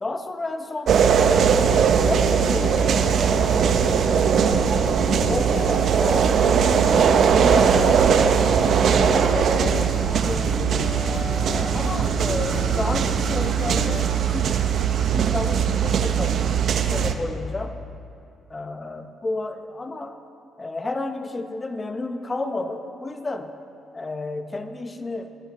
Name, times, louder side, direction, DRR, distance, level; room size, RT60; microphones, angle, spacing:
voice 1, 0.0-4.1 4.5-6.6 7.1-10.0 10.2-10.9 11.5-14.7 15.1-17.8 18.5-20.2 20.6-23.5 23.9-25.3, left 2 dB, 25° left, 8 dB, 0.8 m, -31 dB
sound 1, 0.9-17.1, right 7 dB, 65° right, 0.6 m, -20 dB
sound 2, 1.5-14.0, left 4 dB, 80° left, 1.1 m, -34 dB
14.0 x 9.5 x 4.2 m, 2.5 s
cardioid pair, 90°, 0 cm